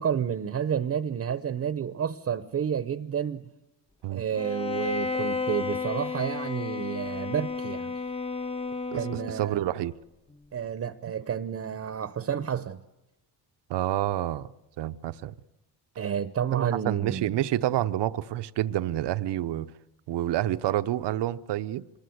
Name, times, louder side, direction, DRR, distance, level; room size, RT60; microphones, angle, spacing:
voice 1, 0.0-3.4 4.1-8.0 8.9-9.6 10.5-12.8 16.0-17.3, right 8 dB, 35° right, 0.8 m, -30 dB
Bowed string instrument, 4.4-9.5, left 4 dB, 15° left, 0.7 m, -32 dB
voice 2, 8.9-9.9 11.1-11.2 13.7-14.5 14.8-15.3 16.5-19.7 20.1-21.8, right 13 dB, 70° right, 0.9 m, -28 dB
25.5 x 20.0 x 7.9 m
cardioid pair, 140°, 43 cm